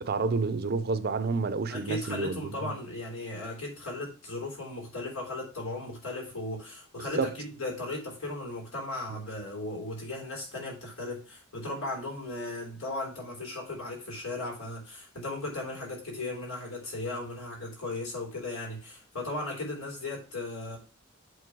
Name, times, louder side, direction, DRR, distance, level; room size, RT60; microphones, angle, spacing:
voice 1, 0.0-2.7 7.1-7.3, right 4 dB, 50° right, 0.6 m, -29 dB
voice 2, 1.7-20.8, left 2 dB, 85° left, 3.6 m, -36 dB
8.3 x 3.8 x 4.7 m
head